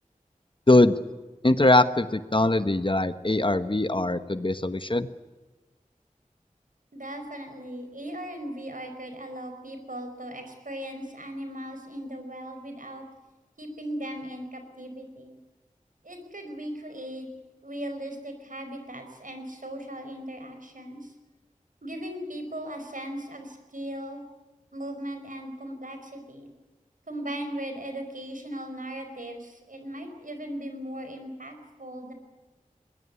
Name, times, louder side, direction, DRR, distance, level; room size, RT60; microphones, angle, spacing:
voice 1, 1.4-5.1, left 2 dB, 35° left, 11 dB, 1.1 m, -21 dB
voice 2, 6.9-13.0 13.6-15.4 16.0-17.3 17.6-21.1 21.8-24.2 24.7-26.5 27.1-32.1, right 1 dB, 70° right, 6 dB, 5.0 m, -38 dB
21.5 x 20.5 x 9.7 m, 1.2 s
wide cardioid pair, 45°, 14 cm